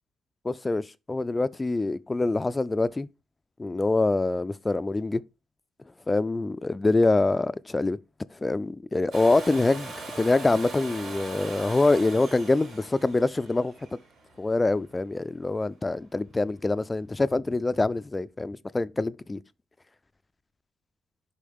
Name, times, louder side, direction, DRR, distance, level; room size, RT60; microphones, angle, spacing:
voice 1, 0.4-3.1 3.6-5.2 6.1-8.0 8.3-13.7 14.4-19.4, left 2 dB, 20° left, 0.3 m, -25 dB
Domestic sounds home sounds, 9.1-14.9 16.8-16.9, right 3 dB, 85° right, 3.6 m, -40 dB
8.4 x 5.3 x 3.5 m
cardioid pair, 90°, 0 cm